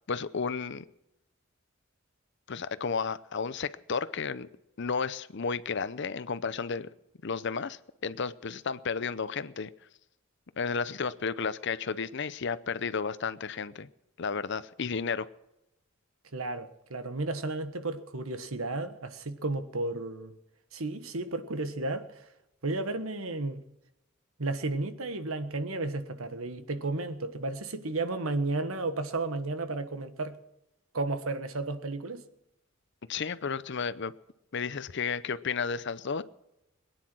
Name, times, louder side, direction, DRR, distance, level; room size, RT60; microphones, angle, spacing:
voice 1, 0.1-0.8 2.5-4.5 4.8-6.9 7.2-9.7 10.6-13.9 14.2-15.3 33.1-34.1 34.5-36.2, left 5 dB, 60° left, 0.7 m, -32 dB
voice 2, 16.3-20.3 20.7-22.3 22.6-23.6 24.4-30.4 30.9-32.3, right 2 dB, 85° right, 1.4 m, -33 dB
22.0 x 9.7 x 6.2 m
head